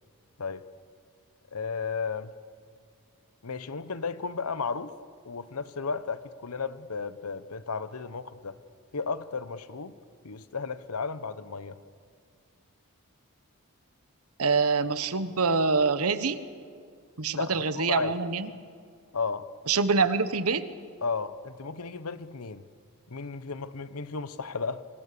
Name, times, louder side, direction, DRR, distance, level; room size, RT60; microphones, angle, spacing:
voice 1, 1.5-2.3 3.4-4.9 5.2-8.5 8.9-9.9 10.2-11.8 17.3-18.1 19.1-19.5 21.0-22.6 23.1-24.9, left 4 dB, 80° left, 13 dB, 1.0 m, -34 dB
voice 2, 14.4-16.4 17.2-18.5 19.7-20.7, right 4 dB, 75° right, 12 dB, 1.2 m, -25 dB
28.0 x 25.0 x 6.8 m, 2.1 s
head